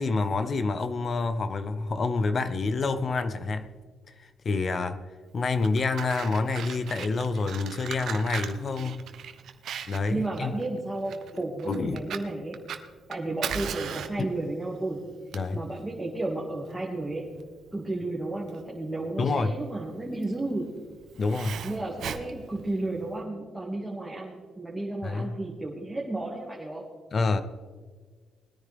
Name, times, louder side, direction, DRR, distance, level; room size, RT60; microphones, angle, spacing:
voice 1, 0.0-3.7 4.2-5.0 5.3-9.0 9.9-10.5 11.3-12.0 15.3-15.6 19.2-19.6 21.2-21.6 25.0-25.4 27.1-27.4, left 3 dB, 45° left, 11 dB, 0.7 m, -28 dB
Fire, 5.4-23.2, right 8 dB, 70° right, 1.0 m, -39 dB
voice 2, 10.1-12.6 13.1-15.0 15.5-17.3 17.7-20.7 21.6-26.9, right 2 dB, 10° right, -4 dB, 2.2 m, -33 dB
20.5 x 9.9 x 3.6 m, 1.5 s
cardioid pair, 90°, 0 cm